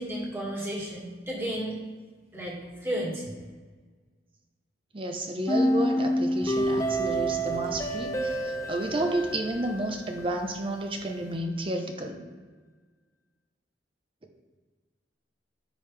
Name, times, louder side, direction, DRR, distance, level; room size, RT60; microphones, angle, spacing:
voice 1, 0.0-1.8 2.3-3.3, equal, 15° right, -5 dB, 2.0 m, -33 dB
voice 2, 4.9-12.2, right 1 dB, 30° right, 4 dB, 0.7 m, -31 dB
sound 1, 5.5-10.5, right 1 dB, 20° left, 0.7 m, -28 dB
sound 2, 6.4-11.4, left 1 dB, 55° left, 0.9 m, -47 dB
10.0 x 5.2 x 3.3 m, 1.4 s
head